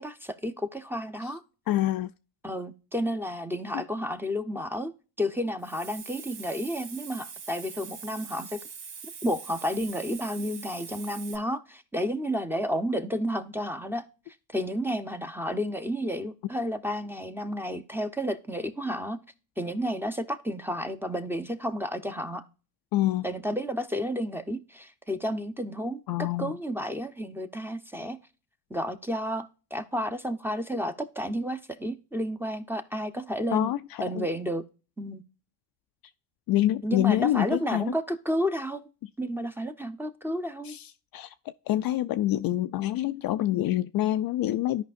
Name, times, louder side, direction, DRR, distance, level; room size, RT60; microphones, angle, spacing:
voice 1, 0.0-1.4 2.4-4.9 5.2-8.6 9.2-14.1 14.5-19.2 19.6-22.4 23.2-28.2 28.7-33.7 34.0-34.6 35.0-35.2 36.8-38.9 39.2-40.8, equal, 5° right, 0.8 m, -31 dB
voice 2, 1.7-2.1 22.9-23.3 26.1-26.5 33.5-34.3 36.5-37.8 40.6-41.3 41.7-44.8, left 13 dB, 50° left, 0.4 m, -26 dB
Hiss, 5.6-11.4, right 6 dB, 55° right, 1.5 m, -43 dB
13.5 x 5.2 x 2.5 m
supercardioid pair, 85°, 49 cm